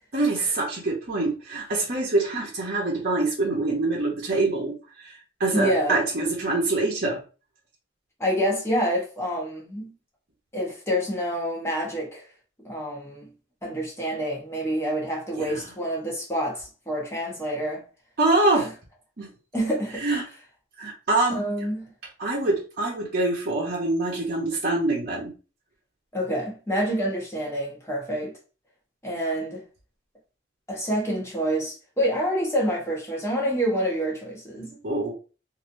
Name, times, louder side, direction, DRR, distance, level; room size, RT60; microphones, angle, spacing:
voice 1, 0.1-7.2 15.4-15.6 18.2-18.7 19.2-19.3 20.0-20.2 20.8-21.4 22.2-25.3 34.8-35.1, right 2 dB, 50° right, 0.9 m, -25 dB
voice 2, 5.5-6.0 8.2-9.9 10.5-12.2 12.6-13.3 13.6-17.8 18.5-18.7 19.5-20.0 21.3-21.9 26.1-28.3 29.0-29.6 30.7-34.8, equal, 15° left, 1.1 m, -27 dB
3.1 x 2.7 x 2.6 m
head